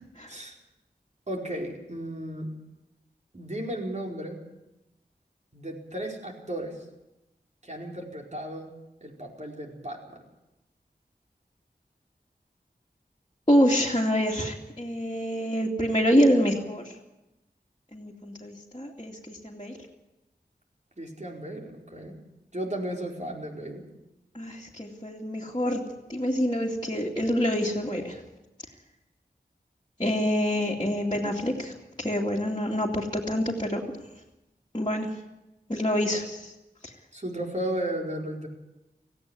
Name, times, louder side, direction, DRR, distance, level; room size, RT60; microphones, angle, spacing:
voice 1, 1.3-2.5 3.3-4.4 5.5-6.8 7.6-8.7 9.0-10.2 21.0-22.1 22.5-23.8 37.1-38.5, right 1 dB, 40° right, 0 dB, 4.8 m, -34 dB
voice 2, 13.5-16.9 17.9-19.8 24.3-25.8 26.1-28.2 30.0-31.7 32.0-33.8 34.7-35.1 35.7-36.5, equal, 25° left, -4 dB, 2.6 m, -26 dB
18.0 x 16.0 x 9.7 m, 0.95 s
wide cardioid pair, 50°, 17 cm